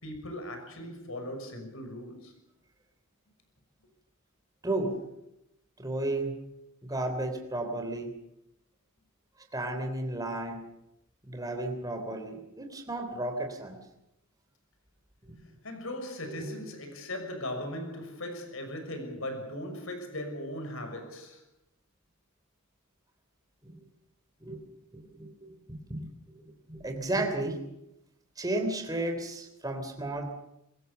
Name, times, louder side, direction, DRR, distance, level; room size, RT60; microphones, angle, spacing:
voice 1, 0.0-2.3 15.6-21.4, left 1 dB, 70° left, 6.2 m, -38 dB
voice 2, 4.6-5.0 5.8-6.4 6.8-8.1 9.5-10.7 11.2-13.8 15.3-15.4 16.2-16.5 23.6-23.9 24.4-24.6 24.9-25.5 25.9-27.6 28.4-30.3, right 2 dB, 15° right, 3.4 m, -33 dB
23.0 x 21.0 x 6.9 m
head